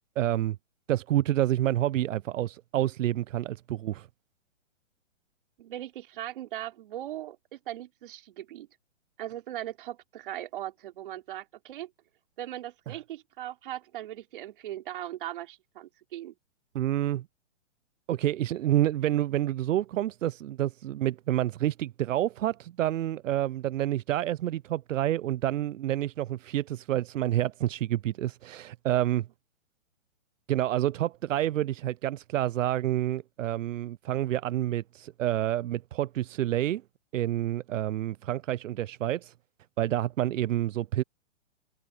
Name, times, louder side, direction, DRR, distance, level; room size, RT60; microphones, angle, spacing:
voice 1, 0.2-0.6 0.9-4.1 12.9-13.0 16.7-17.3 18.1-29.3 30.5-36.8 37.1-39.3 39.8-41.0, right 13 dB, 85° right, 0.5 m, -28 dB
voice 2, 5.6-8.7 9.2-11.9 12.4-16.4, right 13 dB, 45° right, 4.2 m, -39 dB
hypercardioid pair, 165°, 37 cm